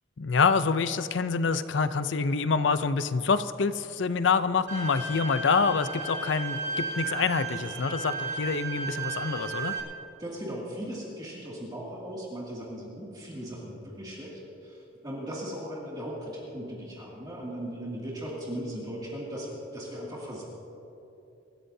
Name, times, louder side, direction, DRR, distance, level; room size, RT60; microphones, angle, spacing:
voice 1, 0.2-9.8, left 5 dB, 70° left, 12 dB, 0.6 m, -26 dB
Bowed string instrument, 4.7-9.8, right 4 dB, 70° right, 2.5 m, -34 dB
voice 2, 10.2-20.4, equal, 20° right, -6 dB, 2.4 m, -38 dB
25.0 x 14.0 x 2.8 m, 2.9 s
head